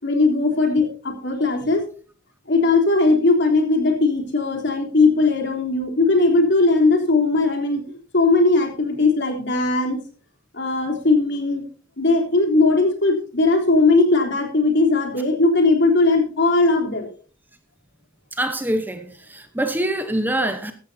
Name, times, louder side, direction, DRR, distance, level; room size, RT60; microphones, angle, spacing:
voice 1, 0.0-1.8 2.5-7.8 8.1-10.0 10.5-11.6 12.0-17.1, left 3 dB, 55° left, 3.5 m, -18 dB
voice 2, 18.3-20.7, right 1 dB, 10° right, 1.0 m, -24 dB
15.5 x 13.0 x 2.8 m
head